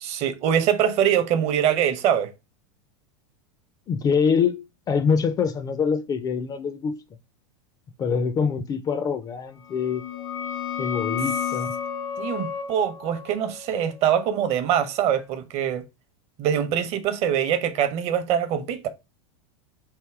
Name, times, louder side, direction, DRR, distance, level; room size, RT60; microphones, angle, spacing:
voice 1, 0.0-2.3 12.2-15.8 16.4-18.9, right 9 dB, 40° right, 0.7 m, -23 dB
voice 2, 3.9-7.0 8.0-10.0 10.8-11.7, left 6 dB, 25° left, 0.4 m, -24 dB
sound 1, 9.7-15.1, left 7 dB, 90° left, 1.2 m, -33 dB
3.5 x 2.6 x 4.6 m
supercardioid pair, 125°, 16 cm